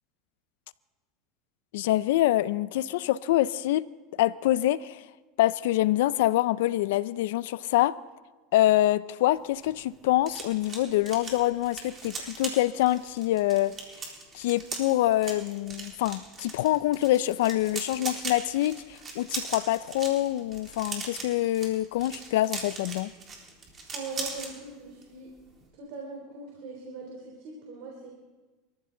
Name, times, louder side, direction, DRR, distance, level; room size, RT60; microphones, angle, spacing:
voice 1, 1.7-3.9 4.2-5.0 5.4-8.0 8.5-13.7 14.3-23.1, left 15 dB, 80° left, 0.5 m, -25 dB
sound 1, 9.3-24.5 24.9-25.1 25.4-25.7, right 4 dB, 30° right, 4.0 m, -39 dB
voice 2, 23.9-25.3 25.7-28.3, right 3 dB, 65° right, 3.4 m, -41 dB
25.5 x 14.5 x 3.9 m
supercardioid pair, 125°, 0 cm